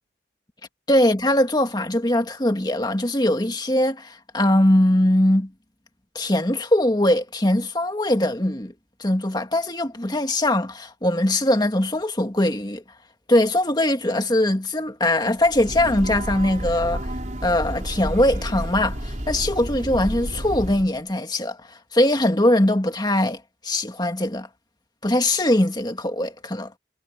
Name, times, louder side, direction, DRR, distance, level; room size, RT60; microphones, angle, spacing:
voice 1, 0.9-5.5 6.2-8.7 9.0-12.8 13.3-17.1 17.4-21.6 21.9-24.5 25.0-26.7, left 1 dB, 20° left, 2.1 m, -21 dB
Breathing / Train, 15.4-21.0, equal, 40° right, 5.0 m, -30 dB
head